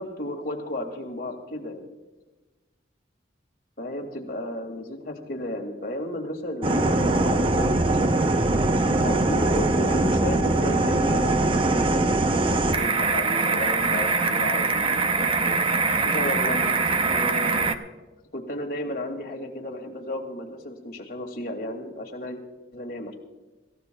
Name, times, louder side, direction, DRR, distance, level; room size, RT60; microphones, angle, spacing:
voice 1, 0.0-1.9 3.8-8.1 8.5-12.2 12.7-15.6 16.0-17.7 18.3-22.4 22.7-23.1, left 1 dB, 50° left, 2 dB, 2.3 m, -33 dB
sound 1, 6.6-17.7, right 3 dB, 30° right, 0.6 m, -22 dB
26.5 x 15.0 x 2.3 m, 1.2 s
head